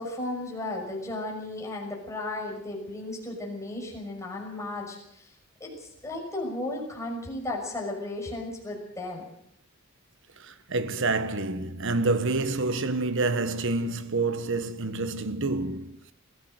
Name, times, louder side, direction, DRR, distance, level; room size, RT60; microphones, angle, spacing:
voice 1, 0.0-5.3 5.6-9.3, left 2 dB, 15° left, 6.1 m, -35 dB
voice 2, 10.4-16.1, right 3 dB, 60° right, 1.4 m, -28 dB
22.5 x 15.5 x 7.9 m
head